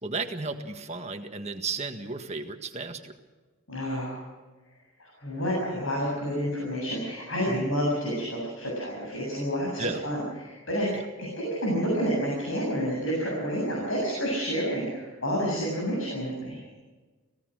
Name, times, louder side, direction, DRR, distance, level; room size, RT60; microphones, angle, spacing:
voice 1, 0.0-3.1 7.5-7.7 9.8-10.0 10.9-11.0, right 3 dB, 30° right, 5 dB, 1.7 m, -34 dB
voice 2, 3.7-4.2 5.0-10.9 11.2-16.7, equal, 70° left, -3 dB, 7.5 m, -29 dB
26.0 x 18.0 x 6.5 m, 1.3 s
head